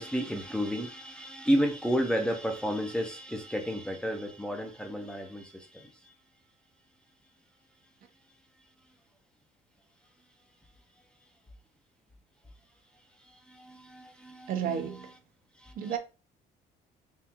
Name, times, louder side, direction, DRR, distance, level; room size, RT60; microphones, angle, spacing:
voice 1, 0.0-5.9 13.5-15.1 15.6-15.9, equal, 5° left, 0.6 m, -32 dB
voice 2, 14.5-15.1 15.8-16.0, right 8 dB, 55° right, 0.6 m, -31 dB
3.7 x 2.4 x 2.8 m
cardioid pair, 110°, 17 cm